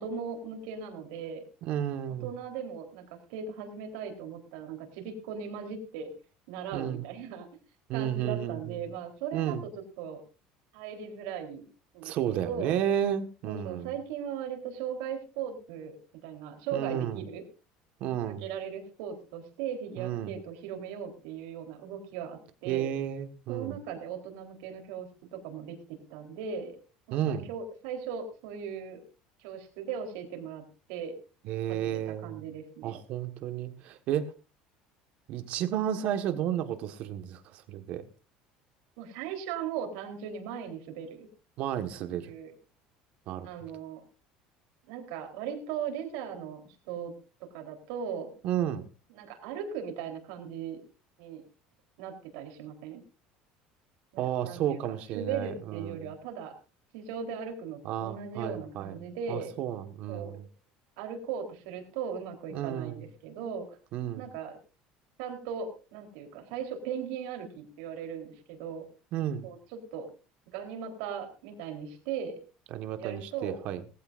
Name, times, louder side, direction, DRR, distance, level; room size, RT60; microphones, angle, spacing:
voice 1, 0.0-1.4 2.2-6.1 6.5-7.5 7.9-10.2 10.7-11.6 11.9-12.7 13.4-17.4 18.2-22.9 23.5-26.8 27.1-29.0 29.4-30.6 30.9-31.1 31.7-33.0 39.0-41.3 42.2-42.5 43.4-44.0 44.9-47.1 47.4-48.3 49.1-50.8 51.2-51.4 52.0-53.0 54.1-54.8 55.1-56.5 56.9-59.5 60.1-60.3 61.0-63.7 64.2-64.6 65.2-68.9 69.4-70.1 70.5-72.4 73.0-73.7, right 7 dB, 80° right, 4 dB, 3.7 m, -38 dB
voice 2, 1.6-2.3 6.7-7.0 7.9-8.8 9.3-9.6 12.0-13.9 16.7-17.2 18.0-18.5 20.0-20.4 22.7-23.8 27.1-27.5 31.4-32.5 32.8-34.3 35.3-38.0 41.6-42.3 43.3-43.5 48.4-48.9 54.2-56.1 57.8-59.0 59.3-60.4 62.5-63.0 63.9-64.2 69.1-69.5 72.7-73.8, right 10 dB, 50° right, 9 dB, 1.4 m, -32 dB
19.0 x 15.0 x 2.5 m, 0.32 s
cardioid pair, 165°, 3 cm